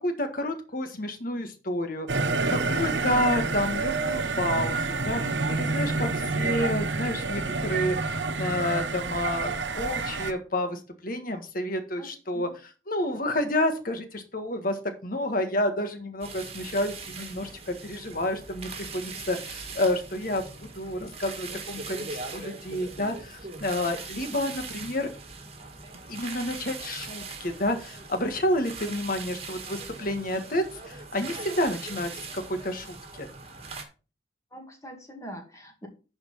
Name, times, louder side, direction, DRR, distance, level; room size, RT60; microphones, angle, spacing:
voice 1, 0.0-5.2 5.5-12.5 12.9-20.4 20.7-25.1 26.1-33.3, left 1 dB, 50° left, 7 dB, 1.7 m, -30 dB
sound 1, 2.1-10.3, right 3 dB, 75° right, 1.0 m, -28 dB
voice 2, 12.0-12.5 34.5-35.9, right 1 dB, 15° left, 2 dB, 2.0 m, -43 dB
sound 2, 16.2-33.8, right 4 dB, 35° right, 1.8 m, -40 dB
10.5 x 4.4 x 5.5 m, 0.33 s
head